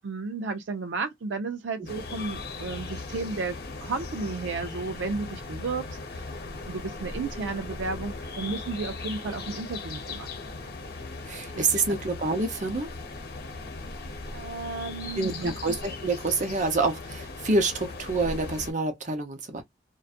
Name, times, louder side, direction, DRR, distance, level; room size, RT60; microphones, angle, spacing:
voice 1, 0.0-5.9 6.1-6.3 6.7-10.3 11.5-11.8 14.3-15.5, right 4 dB, 80° right, 0.4 m, -33 dB
sound 1, 1.9-18.7, left 3 dB, 55° left, 0.8 m, -38 dB
voice 2, 11.3-12.9 15.2-19.6, right 3 dB, 45° right, 0.7 m, -27 dB
2.6 x 2.2 x 2.4 m
head